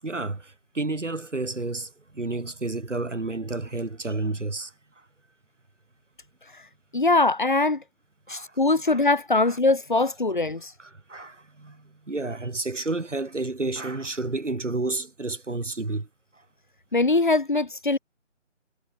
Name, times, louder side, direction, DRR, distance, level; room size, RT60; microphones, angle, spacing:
voice 1, 0.0-4.7 8.3-9.2 9.4-9.6 10.0-10.1 10.8-16.1, right 2 dB, 70° right, 7.7 m, -31 dB
voice 2, 6.9-7.8 8.3-10.8 16.9-18.0, left 3 dB, 40° left, 1.9 m, -22 dB
figure-of-eight pair, 180°, 38 cm